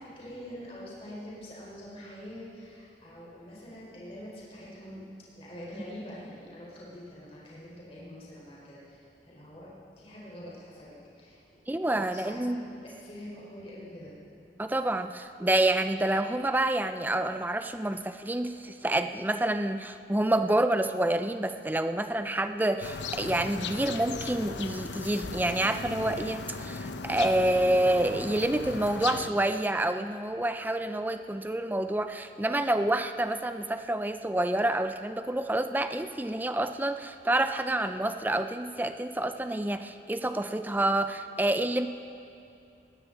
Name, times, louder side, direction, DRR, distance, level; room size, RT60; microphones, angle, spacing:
voice 1, 0.0-5.0 5.3-11.4 11.9-14.1, equal, 35° left, -7 dB, 4.3 m, -45 dB
voice 2, 11.7-12.6 14.6-41.9, right 1 dB, 10° right, 9 dB, 0.4 m, -28 dB
sound 1, 22.8-29.3, left 4 dB, 90° left, 0.8 m, -37 dB
20.0 x 17.0 x 4.0 m, 2.5 s
head